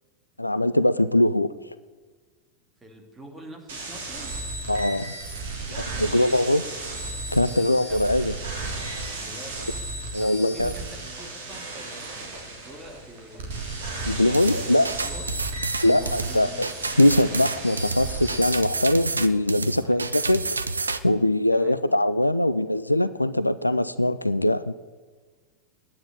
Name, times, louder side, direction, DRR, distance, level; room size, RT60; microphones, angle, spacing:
voice 1, 0.4-1.5 4.7-5.1 6.0-6.6 7.3-8.3 10.1-10.7 14.0-14.9 15.8-16.7 17.0-24.7, left 1 dB, 85° left, 15 dB, 0.4 m, -22 dB
voice 2, 2.8-4.4 5.6-6.7 7.5-8.2 9.2-9.7 10.2-13.6 14.3-15.3 15.6-16.6 19.8-20.0 21.5-21.8, equal, 10° right, 2 dB, 2.7 m, -45 dB
sound 1, 3.7-18.5, right 2 dB, 60° right, 3.1 m, -35 dB
sound 2, 10.4-18.4, right 1 dB, 40° right, 3.9 m, -50 dB
sound 3, 14.3-21.0, right 3 dB, 80° right, 0.6 m, -29 dB
10.5 x 9.6 x 8.9 m, 1.4 s
figure-of-eight pair, 90°, 0 cm